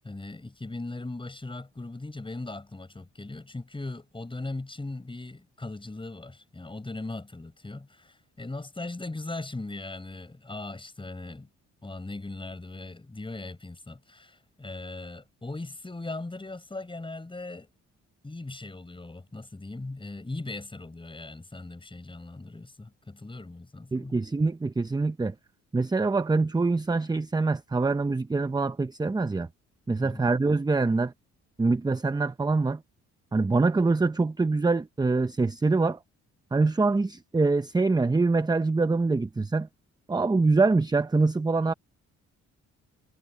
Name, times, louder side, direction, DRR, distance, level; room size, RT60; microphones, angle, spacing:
voice 1, 0.0-11.5 11.8-17.7 18.2-24.2 30.0-30.3, left 2 dB, 15° left, 7.0 m, -39 dB
voice 2, 23.9-25.3 25.7-29.5 29.9-31.1 31.6-32.8 33.3-36.0 36.5-39.7 40.1-41.7, right 3 dB, 15° right, 0.7 m, -24 dB
cardioid pair, 90°, 30 cm